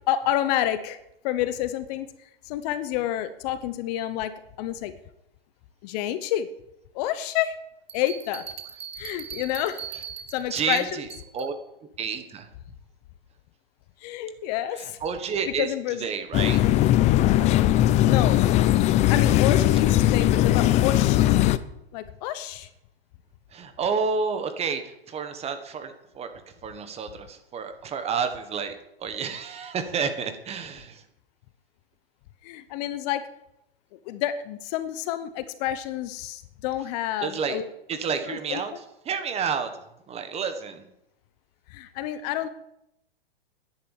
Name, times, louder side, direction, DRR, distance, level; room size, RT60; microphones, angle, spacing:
voice 1, 0.1-1.0 1.2-2.1 2.5-4.9 5.8-6.5 6.9-7.6 7.9-8.5 9.0-9.8 10.3-11.0 11.4-11.5 14.0-15.0 15.6-16.1 18.1-18.4 19.1-21.3 21.9-22.7 32.4-33.3 34.1-37.7 38.3-38.6 41.7-42.5, left 12 dB, 40° left, 12 dB, 1.0 m, -29 dB
sound 1, 7.9-11.6, right 8 dB, 80° right, 1.7 m, -40 dB
voice 2, 10.5-11.1 11.3-11.5 12.0-12.5 14.8-15.7 16.0-16.6 23.5-26.3 26.6-31.0 37.2-37.6 37.9-38.7 39.0-39.7 40.1-40.9, right 6 dB, 20° right, 8 dB, 1.5 m, -30 dB
sound 2, 16.3-21.6, left 13 dB, 25° left, 0.5 m, -19 dB
11.5 x 10.5 x 7.3 m, 0.83 s
hypercardioid pair, 130°, 30 cm